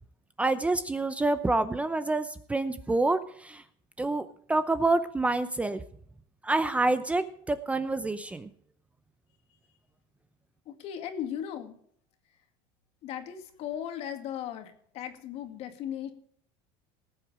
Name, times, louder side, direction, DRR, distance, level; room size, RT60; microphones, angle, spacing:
voice 1, 0.4-3.6 4.0-5.8 6.4-8.5, right 2 dB, 10° right, 12 dB, 0.6 m, -27 dB
voice 2, 10.7-11.8 13.0-16.1, left 9 dB, 55° left, 7 dB, 2.2 m, -37 dB
19.0 x 7.8 x 4.9 m, 0.64 s
supercardioid pair, 130°, 13 cm